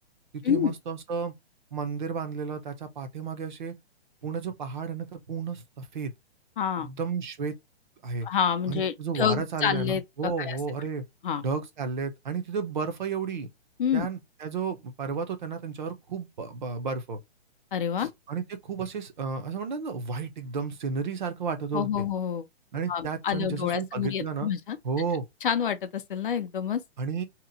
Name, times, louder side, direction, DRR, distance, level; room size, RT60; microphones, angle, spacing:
voice 1, 0.3-1.3 1.7-3.7 4.2-6.1 6.8-7.5 8.0-8.3 8.7-11.0 11.4-13.5 13.9-17.2 18.0-22.0 22.7-24.5 24.8-25.3 27.0-27.2, right 5 dB, 45° right, 0.6 m, -32 dB
voice 2, 6.6-6.9 8.2-10.6 11.2-11.4 13.8-14.1 17.7-18.1 21.7-22.5 22.9-24.8 25.4-26.8, left 8 dB, 55° left, 0.5 m, -28 dB
2.8 x 2.0 x 3.7 m
hypercardioid pair, 170°, 33 cm